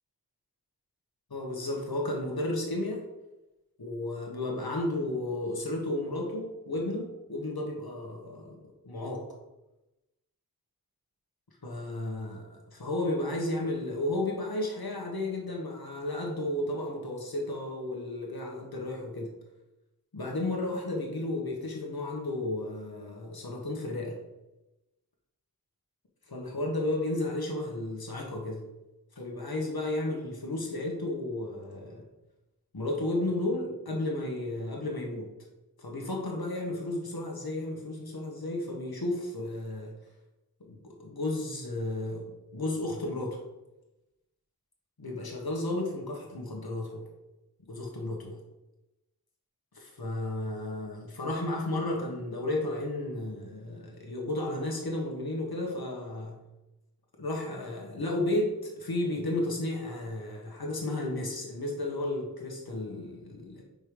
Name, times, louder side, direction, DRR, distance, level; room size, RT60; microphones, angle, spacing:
voice 1, 1.3-3.0 3.8-9.3 11.6-19.3 20.1-24.2 26.3-28.6 29.1-32.0 32.7-35.3 35.8-39.9 40.7-43.4 45.0-47.0 47.7-48.4 49.7-56.4 57.2-63.6, left 1 dB, 75° left, -1 dB, 1.5 m, -33 dB
5.3 x 4.9 x 5.2 m, 0.99 s
wide cardioid pair, 40°, 37 cm